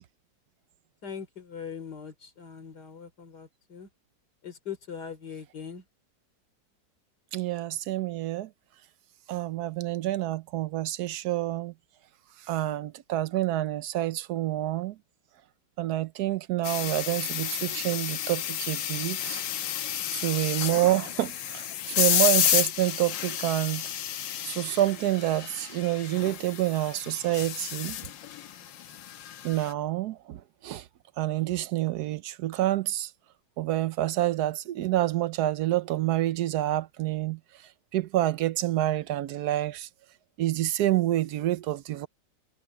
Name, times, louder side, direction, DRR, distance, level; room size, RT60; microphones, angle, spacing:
voice 1, 1.0-3.9 4.4-5.8, left 7 dB, 60° left, 3.7 m, -41 dB
voice 2, 7.3-8.5 9.3-11.7 12.5-15.0 15.8-19.4 20.1-21.7 22.0-23.8 24.4-28.0 29.4-30.8 31.2-33.1 33.6-37.4 37.9-39.9 40.4-42.1, right 14 dB, 70° right, 1.1 m, -28 dB
sound 1, 16.6-29.7, left 10 dB, 90° left, 1.6 m, -31 dB
omnidirectional pair, 1.9 m